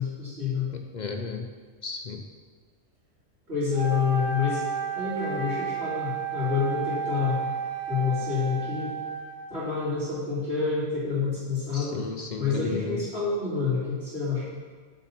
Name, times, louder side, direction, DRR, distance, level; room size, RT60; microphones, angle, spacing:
voice 1, 0.0-0.7 3.5-4.6 4.9-7.4 7.9-8.9 9.5-12.0 12.4-14.4, left 5 dB, 60° right, -14 dB, 2.7 m, -28 dB
voice 2, 0.7-1.5 1.8-2.2 11.7-13.0, left 5 dB, 50° left, 4 dB, 0.5 m, -34 dB
Wind instrument woodwind instrument, 3.7-9.6, right 5 dB, 30° right, 1.1 m, -32 dB
8.3 x 4.6 x 5.8 m, 1.5 s
omnidirectional pair, 1.3 m